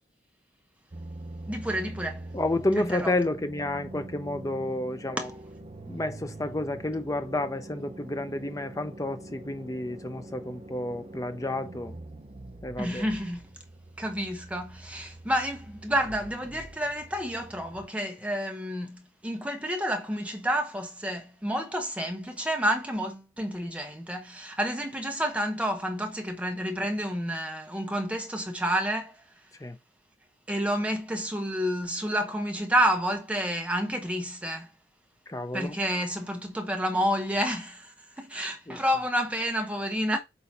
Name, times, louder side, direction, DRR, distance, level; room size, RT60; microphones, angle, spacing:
sound 1, 0.9-17.9, right 2 dB, 35° right, 0.7 m, -44 dB
voice 1, 1.5-2.2 2.8-3.1 5.2-5.3 12.8-13.4 14.0-29.1 30.5-34.7 35.5-40.2, equal, 5° right, 0.9 m, -29 dB
voice 2, 2.3-5.3 5.9-11.9 12.6-13.1 29.6-29.8 35.3-35.8 38.7-38.8, left 1 dB, 20° left, 0.6 m, -30 dB
8.0 x 2.8 x 4.2 m
head